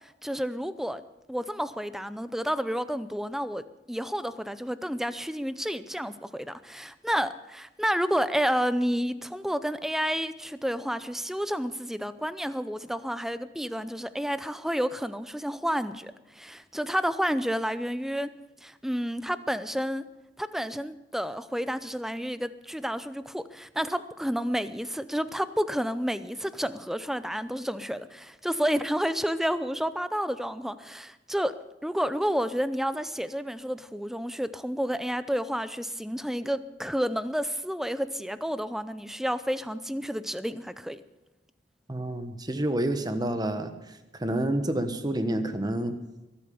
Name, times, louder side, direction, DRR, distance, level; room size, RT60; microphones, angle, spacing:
voice 1, 0.2-1.0 1.3-3.6 3.9-18.3 18.6-20.0 20.4-31.5 31.8-41.0, equal, ahead, 13 dB, 0.6 m, -30 dB
voice 2, 41.9-43.7 44.2-45.9, right 1 dB, 20° right, 8 dB, 1.3 m, -28 dB
23.5 x 8.6 x 7.0 m, 1.0 s
head